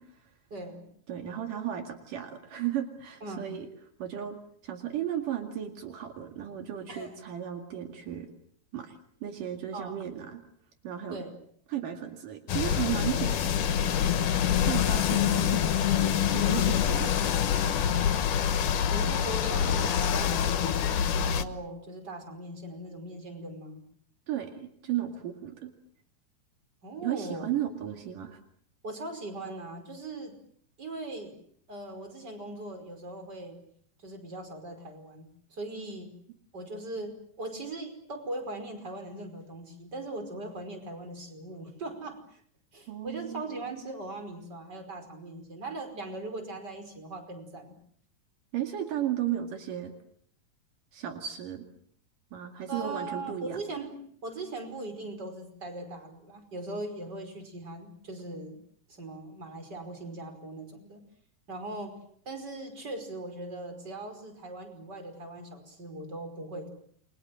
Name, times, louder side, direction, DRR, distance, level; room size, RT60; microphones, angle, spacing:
voice 1, 0.5-0.8 3.2-3.5 6.9-7.1 9.7-10.0 11.1-11.3 18.9-23.8 26.8-27.5 28.8-30.3 30.8-31.3 31.7-33.6 34.0-36.1 36.5-42.4 42.7-47.8 52.7-53.9 54.2-58.6 58.9-61.0 61.5-62.0 62.3-66.7, right 2 dB, 30° right, 6 dB, 5.6 m, -40 dB
voice 2, 1.1-3.7 4.0-8.3 8.7-10.4 10.8-11.2 11.7-13.9 14.5-17.4 24.3-25.7 27.0-28.4 42.9-43.4 48.5-49.9 50.9-51.7 52.3-53.6 61.6-61.7, right 11 dB, 75° right, 5 dB, 3.7 m, -35 dB
sound 1, 12.5-21.4, left 9 dB, 70° left, 2.7 m, -26 dB
29.5 x 24.0 x 7.7 m, 0.64 s
omnidirectional pair, 3.8 m